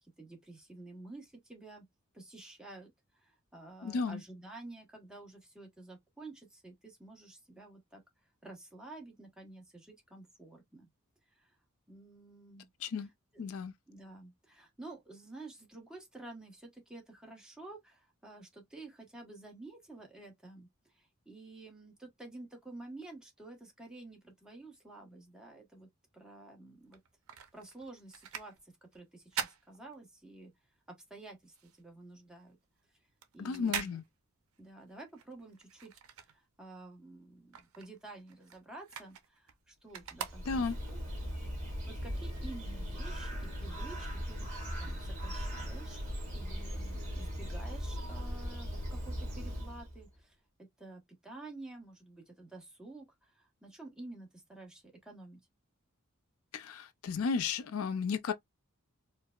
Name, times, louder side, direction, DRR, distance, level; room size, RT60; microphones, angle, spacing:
voice 1, 0.0-1.9 2.1-10.9 11.3-11.6 11.9-12.7 13.3-13.5 13.9-27.0 27.5-30.5 30.9-32.6 33.3-33.9 34.6-41.0 41.9-44.5 44.8-46.0 46.3-55.4, right 2 dB, 5° right, 1.0 m, -51 dB
voice 2, 3.8-4.2 12.8-13.1 13.4-13.7 33.4-34.0 40.5-40.8 56.5-58.3, left 5 dB, 80° left, 0.4 m, -33 dB
sound 1, 26.8-30.5 30.9-36.9 37.2-41.0 41.5-41.6, right 8 dB, 80° right, 0.5 m, -44 dB
Bird, 40.0-50.0, equal, 30° right, 1.9 m, -39 dB
4.5 x 2.0 x 2.3 m
head